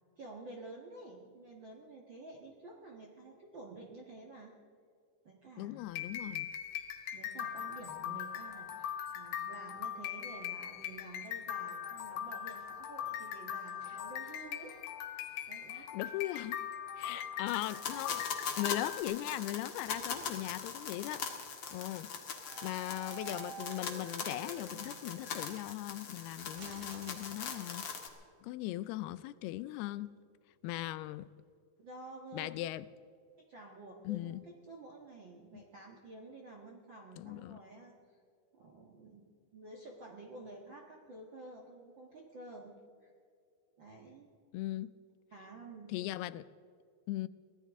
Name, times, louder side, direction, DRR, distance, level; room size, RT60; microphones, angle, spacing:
voice 1, 0.2-4.5 5.2-5.8 7.1-14.8 15.1-15.9 17.1-17.2 31.8-32.5 33.5-38.2 38.5-42.7 43.0-43.1 43.8-44.3 45.3-45.9, right 2 dB, 55° right, 1.3 m, -51 dB
voice 2, 5.6-6.5 8.1-8.2 15.7-16.6 17.0-18.2 18.6-21.3 21.7-22.1 22.6-27.8 28.4-30.1 30.6-31.3 32.3-32.9 34.1-34.4 37.2-37.6 44.5-44.9 45.9-46.4 47.1-47.3, left 16 dB, 85° left, 2.5 m, -39 dB
sound 1, 5.8-19.0, left 9 dB, 70° left, 2.5 m, -41 dB
sound 2, 17.5-28.1, left 6 dB, 50° left, 1.5 m, -41 dB
sound 3, 19.0-20.8 21.1-21.4 22.4-25.7 26.5-28.0, right 9 dB, 75° right, 1.9 m, -52 dB
23.5 x 16.5 x 3.7 m
omnidirectional pair, 4.5 m